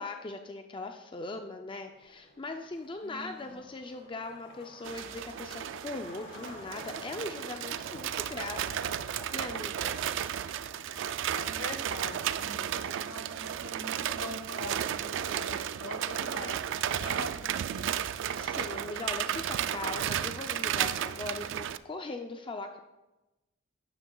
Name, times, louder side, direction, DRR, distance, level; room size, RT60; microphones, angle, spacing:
voice 1, 0.0-9.0 9.3-9.9 18.3-22.8, left 2 dB, 25° left, 5 dB, 0.5 m, -40 dB
Skateboard, 1.9-18.9, left 2 dB, 60° left, 2.4 m, -53 dB
voice 2, 3.0-3.6 11.3-18.2, left 1 dB, 85° left, 5 dB, 1.3 m, -44 dB
sound 1, 4.8-21.8, right 10 dB, 65° right, 0.3 m, -33 dB
12.0 x 9.8 x 2.3 m, 1.0 s
head